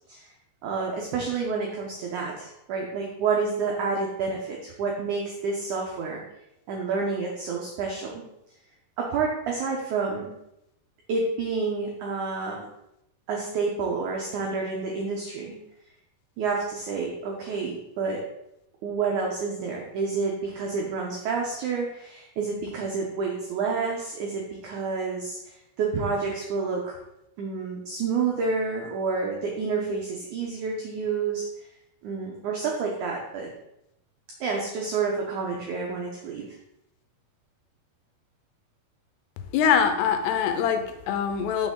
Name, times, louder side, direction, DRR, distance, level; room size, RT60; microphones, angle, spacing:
voice 1, 0.6-6.2 6.7-8.2 9.0-10.3 11.1-12.7 13.3-15.6 16.4-18.2 18.8-25.4 25.8-27.0 27.4-31.4 32.0-33.5 34.4-36.6, right 4 dB, 90° right, -1 dB, 1.7 m, -29 dB
voice 2, 39.5-41.7, left 7 dB, 85° left, 7 dB, 2.8 m, -23 dB
6.3 x 6.1 x 3.7 m, 0.84 s
omnidirectional pair, 4.7 m